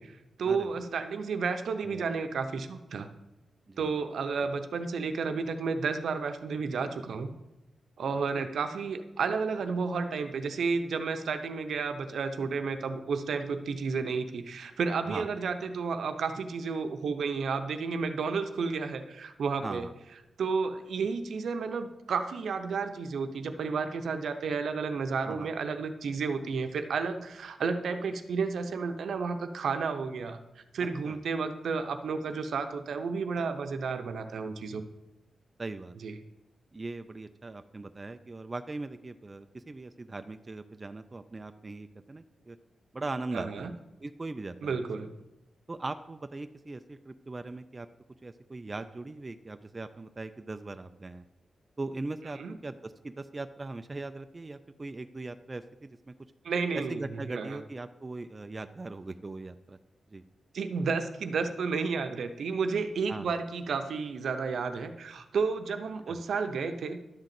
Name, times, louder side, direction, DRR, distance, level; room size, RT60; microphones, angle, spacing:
voice 1, 0.0-3.1 3.8-7.3 8.0-19.9 20.4-34.8 36.0-36.1 43.3-43.7 44.6-45.1 52.4-52.6 56.4-57.0 57.3-57.6 60.5-67.0, right 5 dB, 75° right, 8 dB, 0.7 m, -32 dB
voice 2, 19.6-19.9 25.2-25.5 30.8-31.2 35.6-36.1 36.7-42.6 42.9-44.8 45.7-47.9 48.2-51.2 51.8-56.0 56.7-59.8 60.1-60.2 63.1-63.3 66.1-66.2, right 2 dB, 25° right, 8 dB, 0.4 m, -40 dB
11.5 x 3.9 x 7.5 m, 1.0 s
wide cardioid pair, 125°, 0 cm